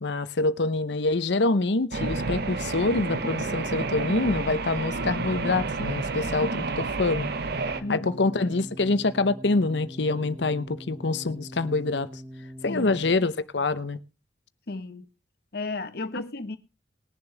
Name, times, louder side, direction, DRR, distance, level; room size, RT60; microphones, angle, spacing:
voice 1, 0.0-7.3 7.9-12.2 12.6-14.0, left 3 dB, 75° left, 0.8 m, -26 dB
sound 1, 1.9-7.8, right 3 dB, 60° right, 1.0 m, -30 dB
sound 2, 7.7-13.1, equal, 10° right, 1.2 m, -43 dB
voice 2, 7.8-8.4 12.7-13.0 14.7-15.1 15.5-16.6, left 2 dB, 60° left, 1.2 m, -34 dB
21.0 x 7.1 x 3.4 m
head